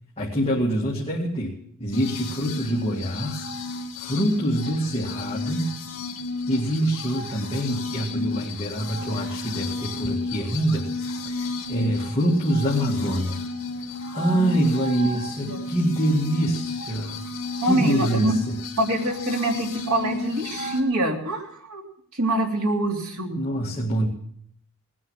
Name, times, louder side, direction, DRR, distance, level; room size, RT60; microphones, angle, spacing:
voice 1, 0.2-1.5 1.8-3.5 4.0-5.8 6.5-10.9 11.2-13.4 14.1-17.2 17.6-18.6 23.4-24.1, right 1 dB, 25° left, -3 dB, 2.1 m, -25 dB
sound 1, 1.9-20.8, left 3 dB, 65° left, 3.0 m, -32 dB
voice 2, 14.3-14.7 15.5-15.7 17.6-18.3 18.8-21.8 22.1-23.4, right 1 dB, 75° right, 1 dB, 3.0 m, -25 dB
19.0 x 9.8 x 7.3 m, 0.66 s
head